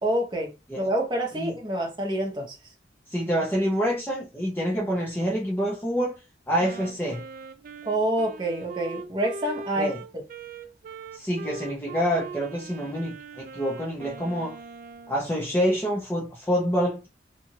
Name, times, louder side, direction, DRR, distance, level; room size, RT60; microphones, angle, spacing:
voice 1, 0.0-2.6 7.8-9.9, right 1 dB, 25° right, 0.8 m, -27 dB
voice 2, 3.1-6.2 6.5-7.2 9.8-10.0 11.1-14.6 15.1-17.1, equal, 10° left, 0.6 m, -27 dB
Wind instrument woodwind instrument, 6.6-15.2, right 4 dB, 50° right, 0.3 m, -41 dB
2.9 x 2.4 x 2.7 m
head